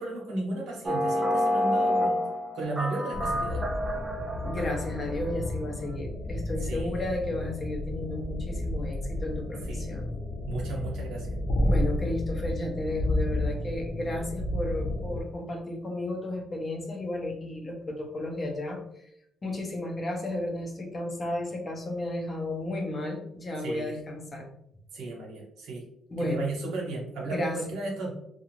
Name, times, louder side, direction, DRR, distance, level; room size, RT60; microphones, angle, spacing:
voice 1, 0.0-2.2 2.5-3.6 6.7-7.0 9.7-10.0 10.5-11.4 23.6-23.9 24.9-25.8 26.2-28.1, right 2 dB, 85° right, -2 dB, 0.9 m, -35 dB
sound 1, 0.9-5.4, left 1 dB, 30° right, 0.5 m, -28 dB
sound 2, 3.1-15.2, left 1 dB, 70° left, 0.8 m, -31 dB
voice 2, 4.4-10.1 11.6-19.1 19.4-24.5 26.1-26.5 27.3-27.6, left 1 dB, 35° left, 2 dB, 0.7 m, -33 dB
2.5 x 2.3 x 3.0 m, 0.76 s
cardioid pair, 90°, 0 cm